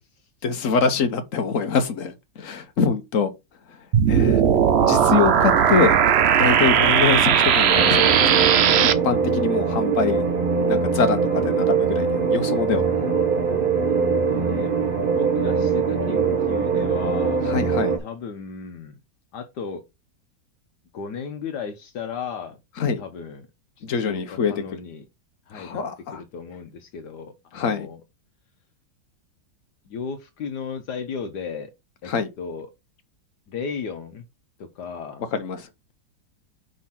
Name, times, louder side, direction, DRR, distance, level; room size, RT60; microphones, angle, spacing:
voice 1, 0.4-3.3 4.1-4.4 4.8-6.0 6.4-8.5 9.0-10.3 10.7-12.9 17.5-17.9 22.8-23.0 23.8-24.5 25.5-26.2 27.5-27.9 32.1-32.3 35.3-35.7, left 5 dB, 50° left, 1.3 m, -24 dB
sound 1, 3.9-8.9, right 8 dB, 70° right, 0.6 m, -17 dB
sound 2, 7.7-18.0, right 5 dB, 30° right, 1.4 m, -22 dB
voice 2, 14.3-14.7 15.1-17.4 18.0-19.0 19.3-19.8 20.9-22.6 23.0-23.5 23.8-24.2 24.5-25.0 25.5-25.8 26.1-28.0 29.9-31.7 32.0-32.1 32.4-32.7 33.5-34.2 34.6-35.2, left 6 dB, 70° left, 1.4 m, -35 dB
5.4 x 3.9 x 5.8 m
omnidirectional pair, 1.9 m